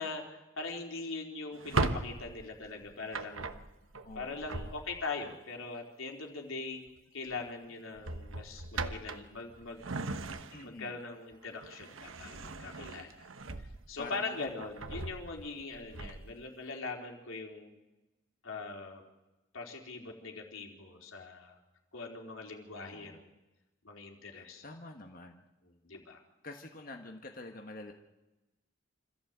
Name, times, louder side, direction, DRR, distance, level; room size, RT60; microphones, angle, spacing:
voice 1, 0.0-3.6 4.2-6.8 7.1-9.8 10.6-13.3 13.9-17.7 18.4-19.0 19.5-21.6 21.9-23.3 23.8-24.6 25.8-26.2, left 3 dB, 90° left, 1 dB, 3.9 m, -41 dB
Drawer open or close, 1.5-5.2 6.7-7.0 7.3-7.5 8.0-10.9 11.3-14.1 14.5-16.4, right 3 dB, 85° right, 1.2 m, -38 dB
voice 2, 4.0-4.7 10.5-11.0 14.0-14.5 22.8-23.2 24.3-25.4 26.4-27.9, left 2 dB, 45° left, 3 dB, 1.5 m, -47 dB
26.5 x 14.5 x 8.1 m, 1.0 s
head